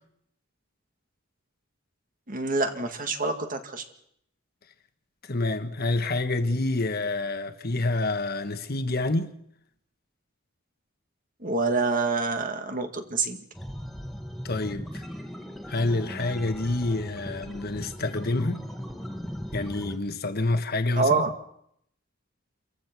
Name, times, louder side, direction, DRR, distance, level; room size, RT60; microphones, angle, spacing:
voice 1, 2.3-3.8 11.4-13.4 21.0-21.3, right 3 dB, 45° right, 2.0 m, -26 dB
voice 2, 5.3-9.3 14.4-15.0 15.7-18.6 19.5-21.2, left 2 dB, 55° left, 1.5 m, -27 dB
sound 1, 13.5-20.0, equal, ahead, 1.8 m, -38 dB
28.5 x 15.0 x 6.1 m
head